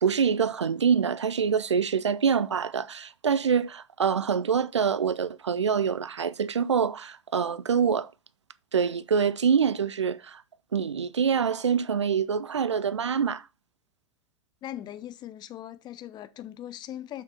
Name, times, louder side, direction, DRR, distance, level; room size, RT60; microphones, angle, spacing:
voice 1, 0.0-8.1 8.7-10.4 10.7-13.4, right 6 dB, 75° right, 0.5 m, -25 dB
voice 2, 14.6-17.2, left 12 dB, 30° left, 0.7 m, -40 dB
6.5 x 6.0 x 4.5 m
figure-of-eight pair, 85°, 15 cm